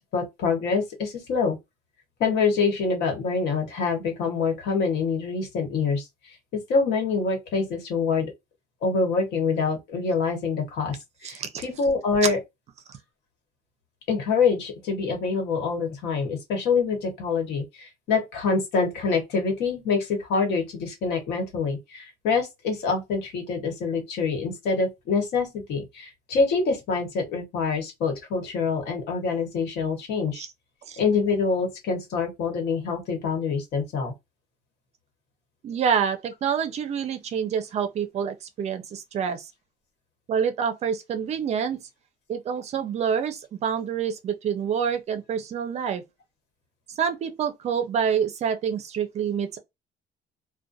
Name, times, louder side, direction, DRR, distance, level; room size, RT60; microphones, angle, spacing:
voice 1, 0.1-1.6 2.2-8.3 8.8-12.4 14.1-30.4 31.0-34.1, left 4 dB, 75° left, 1.2 m, -26 dB
voice 2, 11.2-11.7 12.2-12.3 30.3-30.5 30.9-31.0 35.6-39.5 40.3-41.8 42.3-46.0 47.0-49.6, right 7 dB, 40° right, 0.5 m, -27 dB
2.4 x 2.1 x 2.6 m
cardioid pair, 170°, 17 cm